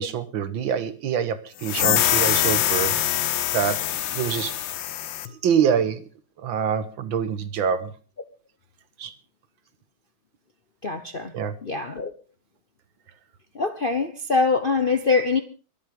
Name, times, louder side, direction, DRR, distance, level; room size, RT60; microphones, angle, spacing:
voice 1, 0.0-3.0 3.5-4.5 5.3-6.1 6.4-7.9 9.0-9.1 11.3-11.5, right 8 dB, 70° right, 1.9 m, -25 dB
sound 1, 1.6-5.3, left 11 dB, 70° left, 1.6 m, -24 dB
voice 2, 10.8-11.3 11.6-12.1 13.5-15.4, left 4 dB, 45° left, 0.7 m, -23 dB
23.5 x 8.2 x 5.2 m
omnidirectional pair, 2.3 m